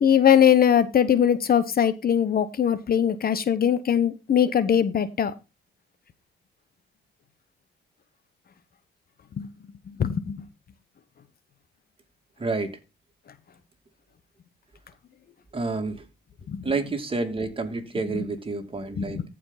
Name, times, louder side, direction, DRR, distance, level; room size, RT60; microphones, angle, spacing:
voice 1, 0.0-5.3 9.4-9.5 10.0-10.4 16.5-16.6 18.1-18.2 19.0-19.2, left 9 dB, 50° left, 1.0 m, -21 dB
voice 2, 12.4-12.8 15.5-16.0 16.6-19.2, right 3 dB, 25° right, 2.5 m, -29 dB
14.5 x 5.2 x 4.0 m
cardioid pair, 90°, 20 cm